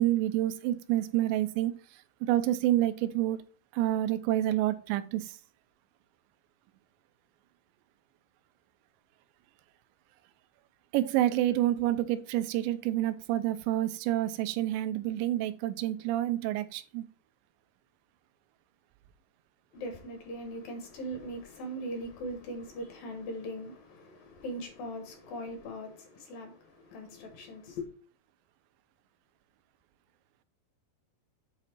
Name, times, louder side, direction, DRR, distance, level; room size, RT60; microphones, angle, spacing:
voice 1, 0.0-1.7 2.3-3.4 3.7-5.4 10.9-17.0, right 13 dB, 90° right, 2.9 m, -28 dB
voice 2, 19.7-27.9, equal, 65° left, 2.6 m, -40 dB
8.0 x 4.0 x 4.4 m
omnidirectional pair, 5.0 m